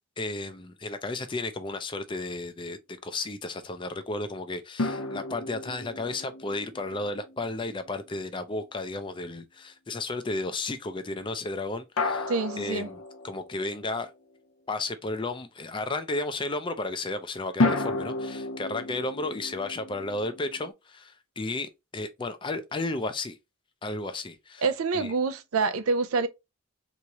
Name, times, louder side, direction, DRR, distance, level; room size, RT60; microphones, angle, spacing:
voice 1, 0.2-12.3 12.6-14.1 14.7-23.4 23.8-24.6 24.9-25.1, left 2 dB, 25° left, 0.4 m, -33 dB
sound 1, 4.8-8.1 12.0-14.0 17.6-20.7, left 2 dB, 85° left, 0.7 m, -32 dB
voice 2, 12.3-12.9 24.6-26.3, right 4 dB, 85° right, 0.5 m, -26 dB
3.6 x 3.0 x 2.8 m
head